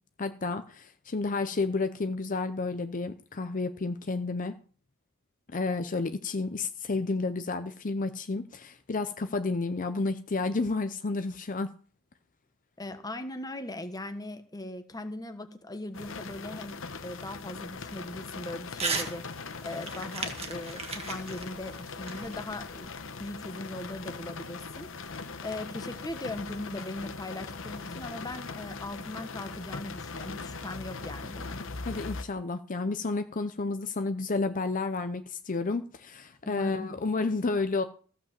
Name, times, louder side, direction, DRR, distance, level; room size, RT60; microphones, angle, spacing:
voice 1, 0.2-4.6 5.5-11.7 31.9-37.8, left 3 dB, 40° left, 10 dB, 0.7 m, -31 dB
voice 2, 12.8-19.2 19.6-22.9 23.2-25.1 25.4-31.6 36.4-36.9, left 1 dB, 20° left, 8 dB, 1.2 m, -39 dB
sound 1, 15.9-32.2, left 4 dB, 65° left, 1.1 m, -40 dB
Crumpling crinkling / Tearing, 18.7-19.1 19.5-22.8, right 4 dB, 30° right, 1.9 m, -35 dB
14.5 x 5.3 x 7.5 m, 0.42 s
head